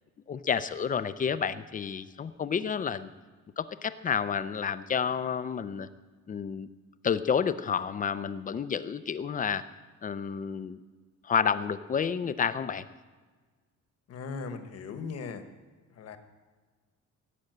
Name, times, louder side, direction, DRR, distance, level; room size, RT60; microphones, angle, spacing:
voice 1, 0.3-3.1 3.6-5.9 6.3-6.7 7.0-9.6 10.0-10.8 11.2-12.9, left 7 dB, 25° left, 14 dB, 0.5 m, -30 dB
voice 2, 14.1-15.4 15.9-16.2, left 5 dB, 50° left, 9 dB, 1.3 m, -38 dB
17.0 x 8.6 x 7.9 m, 1.4 s
cardioid pair, 170°, 31 cm